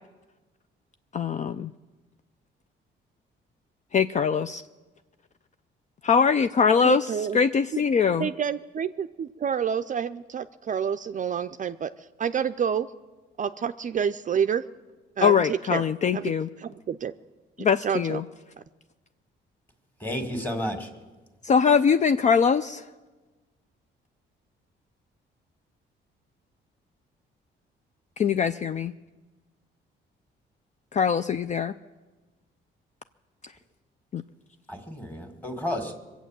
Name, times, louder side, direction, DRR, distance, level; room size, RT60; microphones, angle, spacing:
voice 1, 1.1-1.7 3.9-4.6 6.0-8.3 15.2-16.5 17.6-18.2 21.4-22.9 28.2-28.9 30.9-31.7 34.1-34.2, left 6 dB, 40° left, 11 dB, 0.4 m, -22 dB
voice 2, 6.8-7.4 7.7-7.8 8.2-12.9 13.4-14.6 15.2-15.8 16.1-16.3 16.6-17.1 17.8-18.2, right 8 dB, 40° right, 10 dB, 0.5 m, -28 dB
voice 3, 20.0-20.9 34.7-36.0, left 1 dB, 10° left, 6 dB, 2.1 m, -31 dB
23.0 x 8.2 x 7.5 m, 1.3 s
cardioid pair, 90°, 20 cm